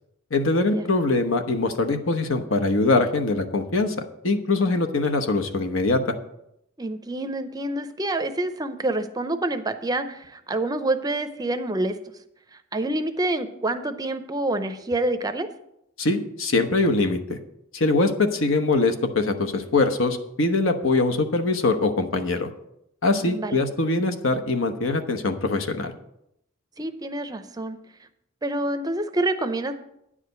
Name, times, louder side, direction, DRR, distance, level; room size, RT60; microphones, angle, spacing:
voice 1, 0.3-3.9 4.2-6.1 16.0-17.4 17.7-22.5 23.0-25.9, left 3 dB, 75° left, 7 dB, 1.0 m, -23 dB
voice 2, 6.8-12.0 12.7-15.5 23.2-23.6 26.8-27.8 28.4-29.7, right 2 dB, 20° right, 9 dB, 0.5 m, -27 dB
9.7 x 5.0 x 8.0 m, 0.80 s
head